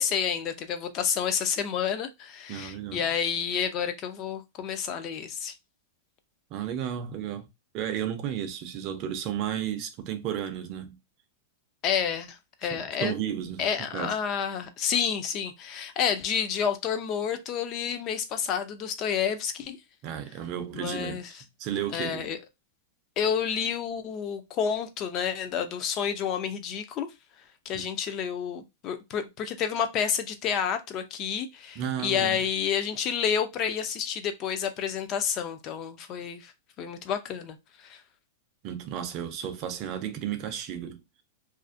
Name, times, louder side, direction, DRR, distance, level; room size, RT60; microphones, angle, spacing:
voice 1, 0.0-5.5 11.8-13.1 13.6-19.8 20.7-21.3 21.9-22.4 23.2-27.1 27.7-36.5 36.8-38.0, left 8 dB, 30° left, 0.4 m, -29 dB
voice 2, 2.5-3.0 6.5-7.5 7.7-11.0 12.6-14.1 20.0-22.3 27.7-27.8 31.8-32.4 38.6-41.0, right 9 dB, 35° right, 0.4 m, -33 dB
2.4 x 2.0 x 2.4 m
supercardioid pair, 160°, 0 cm